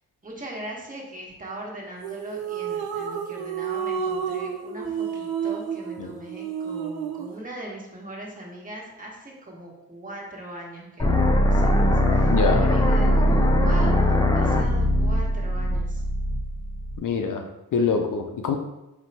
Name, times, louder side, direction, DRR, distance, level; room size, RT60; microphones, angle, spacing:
voice 1, 0.2-12.3 12.6-16.0, right 1 dB, 25° right, -2 dB, 1.1 m, -39 dB
sound 1, 2.0-7.4, right 7 dB, 80° right, 0.5 m, -30 dB
sound 2, 11.0-17.0, left 1 dB, 10° left, 0.3 m, -20 dB
voice 2, 12.3-12.7 17.0-18.6, left 5 dB, 60° left, 5 dB, 0.5 m, -25 dB
4.4 x 2.2 x 4.0 m, 0.94 s
cardioid pair, 100°, 36 cm